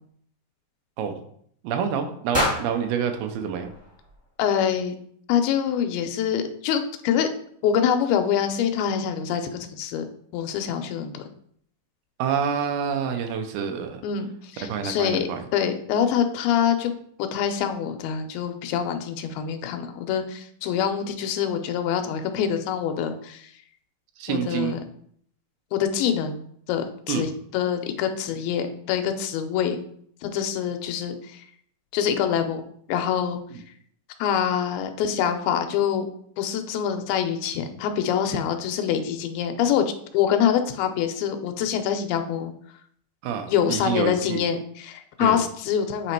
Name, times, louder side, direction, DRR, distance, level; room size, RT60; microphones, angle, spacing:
voice 1, 1.6-3.7 12.2-14.0 14.6-15.4 24.2-24.8 27.1-27.3 43.2-44.4 45.2-45.4, right 7 dB, 85° right, 6 dB, 2.6 m, -27 dB
sound 1, 2.3-4.5, left 1 dB, 20° right, 0.4 m, -30 dB
voice 2, 4.4-5.0 5.3-7.3 7.6-10.0 10.3-11.2 14.0-16.9 17.2-23.5 24.3-24.8 25.7-26.4 26.7-29.8 30.2-31.4 31.9-32.6 32.9-33.4 34.2-36.1 36.4-42.5 43.5-46.1, left 8 dB, 90° left, 6 dB, 2.5 m, -25 dB
8.2 x 3.0 x 4.4 m, 0.65 s
omnidirectional pair, 4.2 m